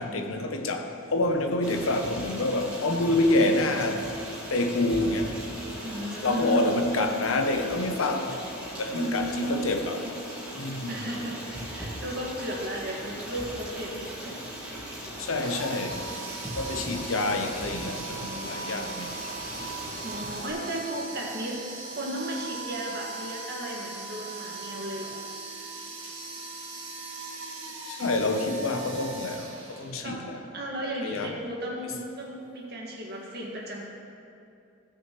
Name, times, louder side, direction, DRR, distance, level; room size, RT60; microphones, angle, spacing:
voice 1, 0.0-4.1 4.5-5.5 6.2-8.4 8.8-10.1 10.5-11.1 15.2-16.0 16.6-19.1 19.8-19.9 27.9-30.4 30.8-31.3, left 2 dB, 85° left, 0.8 m, -27 dB
Stream, 1.6-20.5, equal, 5° right, 1.8 m, -39 dB
voice 2, 5.8-6.7 8.9-9.6 10.9-14.4 19.5-19.7 20.0-25.3 29.9-30.3 30.5-33.9, right 1 dB, 50° right, 1.8 m, -34 dB
sound 1, 15.3-30.2, right 3 dB, 70° right, 1.6 m, -39 dB
16.0 x 6.3 x 3.1 m
head